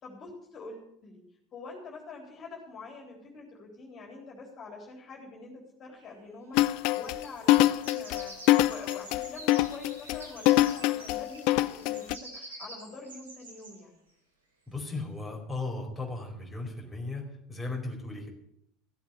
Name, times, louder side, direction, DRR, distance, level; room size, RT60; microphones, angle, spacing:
voice 1, 0.0-1.2 1.5-14.0, left 3 dB, 35° left, 0 dB, 3.9 m, -46 dB
sound 1, 6.0-6.1 6.6-13.8 14.8-15.0, right 2 dB, 80° right, 3.0 m, -48 dB
sound 2, 6.5-12.2, left 16 dB, 55° left, 0.5 m, -24 dB
voice 2, 14.7-18.3, left 3 dB, ahead, -2 dB, 4.7 m, -36 dB
15.0 x 8.2 x 8.1 m, 0.75 s
figure-of-eight pair, 75°, 0 cm